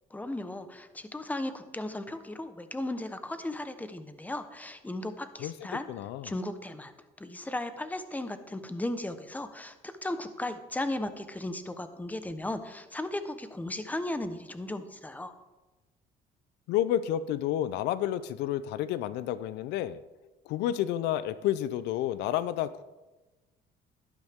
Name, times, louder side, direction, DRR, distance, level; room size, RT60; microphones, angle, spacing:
voice 1, 0.1-5.9 6.2-6.9 7.2-15.3, left 1 dB, 10° left, 10 dB, 1.0 m, -36 dB
voice 2, 5.9-6.3 16.7-20.0 20.5-22.8, left 11 dB, 85° left, 15 dB, 0.5 m, -30 dB
12.5 x 12.0 x 3.6 m, 1.1 s
cardioid pair, 110°, 17 cm